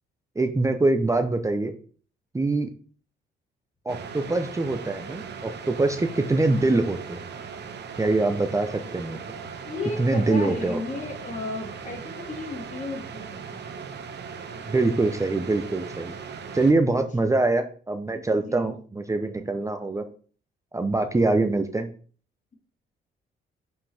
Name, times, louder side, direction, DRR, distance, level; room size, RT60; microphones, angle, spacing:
voice 1, 0.4-1.7 2.3-2.7 3.8-7.2 8.0-9.2 10.0-10.8 14.7-16.1 16.5-20.0 20.7-21.9, right 2 dB, 15° right, 7 dB, 0.7 m, -24 dB
sound 1, 3.9-16.7, right 6 dB, 60° right, 1.2 m, -39 dB
voice 2, 9.6-13.6 16.9-17.0 18.1-18.7, left 2 dB, 40° left, 3 dB, 2.3 m, -34 dB
7.6 x 5.4 x 3.4 m, 0.42 s
cardioid pair, 90°, 20 cm